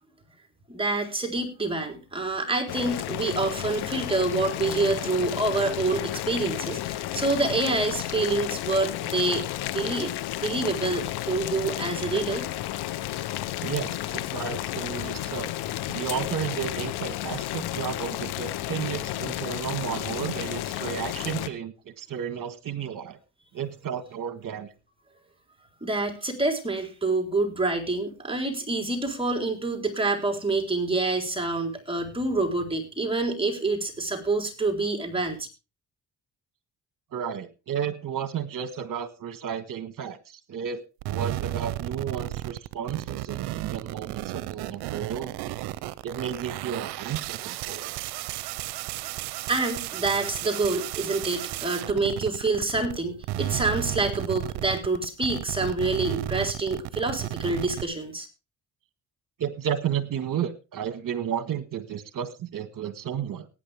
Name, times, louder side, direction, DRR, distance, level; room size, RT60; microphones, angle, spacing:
voice 1, 0.7-9.5 9.7-10.1 10.4-12.5 25.8-35.5 49.5-58.3, right 3 dB, 15° right, 3 dB, 3.9 m, -27 dB
Boiling, 2.7-21.5, left 14 dB, 85° left, 0.9 m, -32 dB
voice 2, 13.6-15.5 15.9-23.2 23.5-24.7 37.1-40.2 40.5-45.6 46.0-48.0 59.4-63.5, right 8 dB, 60° right, 12 dB, 1.6 m, -32 dB
sound 1, 41.0-53.0 53.2-57.8, right 16 dB, 90° right, 0.7 m, -33 dB
18.5 x 9.3 x 3.5 m, 0.29 s
cardioid pair, 75°, 38 cm